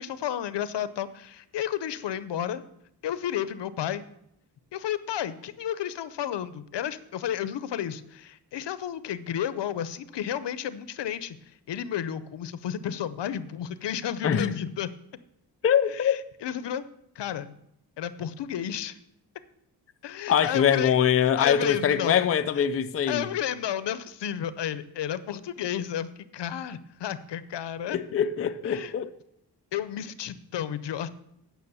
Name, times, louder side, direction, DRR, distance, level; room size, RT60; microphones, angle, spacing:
voice 1, 0.0-2.6 3.0-4.0 4.7-11.4 11.7-14.9 15.9-16.8 17.2-17.5 18.0-19.0 20.0-20.9 21.4-22.2 22.6-22.7 23.1-28.0 28.6-28.9 29.7-31.1, left 10 dB, 85° left, 0.7 m, -32 dB
voice 2, 14.2-14.6 15.6-16.2 20.3-23.3 27.9-29.1, left 8 dB, 35° left, 0.4 m, -23 dB
9.7 x 6.3 x 6.8 m
wide cardioid pair, 170°, 41 cm